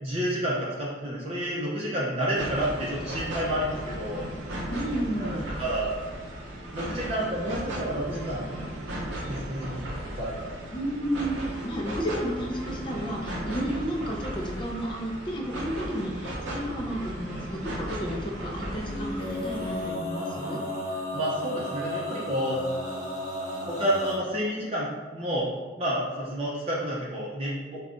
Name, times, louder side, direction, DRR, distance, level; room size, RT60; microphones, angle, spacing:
voice 1, 0.0-4.2 5.1-5.9 6.7-8.5 9.3-9.8 10.2-10.5 21.1-22.6 23.7-25.5 25.8-27.8, equal, 30° right, -6 dB, 0.5 m, -30 dB
sound 1, 2.4-19.9, right 1 dB, 85° right, 0.6 m, -36 dB
voice 2, 4.7-5.5 10.7-20.6, equal, 25° left, -1 dB, 0.4 m, -32 dB
Male singing, 18.8-24.2, left 1 dB, 15° right, 1.3 m, -33 dB
5.2 x 2.2 x 2.4 m, 1.4 s
head